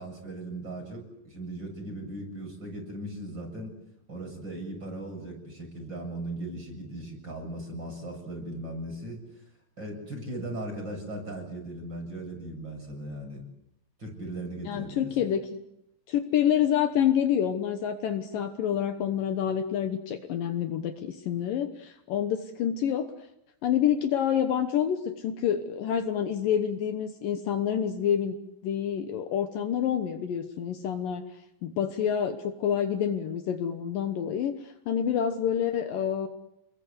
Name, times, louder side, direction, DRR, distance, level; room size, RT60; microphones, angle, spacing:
voice 1, 0.0-3.8 4.1-9.4 9.8-13.4 14.0-15.3, right 1 dB, 25° right, 3 dB, 7.8 m, -38 dB
voice 2, 14.7-15.4 16.1-23.1 23.6-28.4 28.6-31.2 31.6-36.3, left 9 dB, 70° left, 8 dB, 2.7 m, -27 dB
29.5 x 21.5 x 8.1 m, 0.82 s
omnidirectional pair, 4.4 m